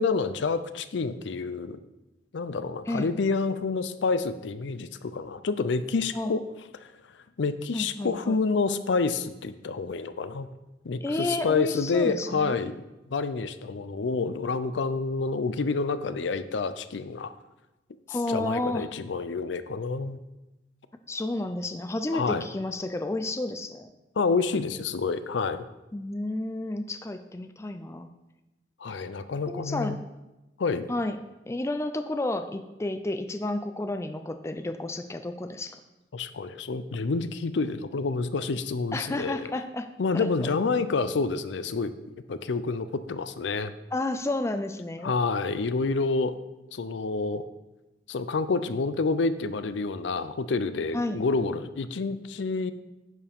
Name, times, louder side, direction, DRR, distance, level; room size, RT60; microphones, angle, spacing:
voice 1, 0.0-1.8 2.3-6.4 6.7-6.9 7.4-10.5 10.8-12.8 13.1-17.3 18.3-20.2 22.1-22.5 24.2-25.7 28.8-30.0 30.6-30.9 36.1-39.5 40.0-41.9 42.3-43.7 45.0-46.4 46.7-47.5 48.1-52.7, left 4 dB, 75° left, 12 dB, 0.5 m, -28 dB
voice 2, 7.7-8.4 11.0-12.6 18.1-18.9 21.1-23.9 25.9-28.1 29.5-30.0 30.9-31.2 31.5-35.8 38.9-39.9 40.1-40.5 43.9-45.1 50.9-51.2, left 2 dB, 15° left, 8 dB, 0.4 m, -31 dB
10.5 x 7.0 x 3.5 m, 1.0 s
head